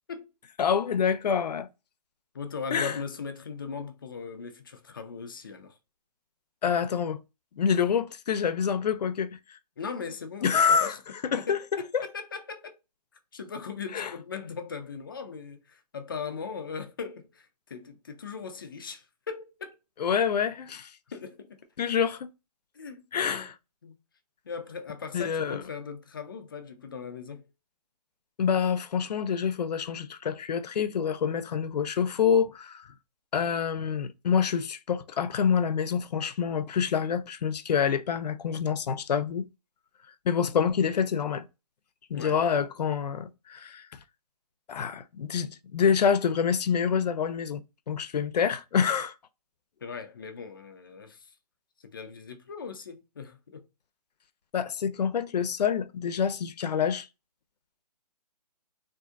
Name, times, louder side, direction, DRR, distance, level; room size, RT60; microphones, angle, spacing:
voice 1, 0.6-1.7 2.7-3.0 6.6-7.2 7.6-9.6 10.4-11.0 11.3-12.0 13.9-14.1 20.0-20.9 21.8-22.3 23.1-23.5 25.1-25.6 28.4-32.9 33.3-39.5 40.2-41.5 42.1-44.0 44.7-49.1 54.5-57.1, left 7 dB, 85° left, 0.5 m, -27 dB
voice 2, 2.3-5.8 9.8-11.0 11.4-12.8 13.3-19.8 21.1-21.6 22.7-23.5 23.8-24.0 24.4-27.5 42.1-42.4 49.8-51.3 51.8-53.6, left 5 dB, 35° left, 0.4 m, -39 dB
3.6 x 2.5 x 2.4 m
hypercardioid pair, 170°, 20 cm